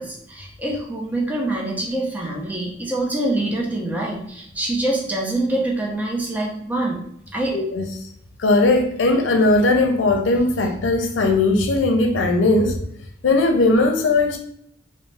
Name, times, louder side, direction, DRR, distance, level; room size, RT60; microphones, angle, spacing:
voice 1, 0.0-7.0 7.3-7.6, right 2 dB, 10° right, -2 dB, 0.5 m, -25 dB
voice 2, 7.5-7.9 8.4-12.8 13.2-14.4, left 2 dB, 85° left, 4 dB, 0.5 m, -18 dB
2.6 x 2.0 x 3.2 m, 0.70 s
head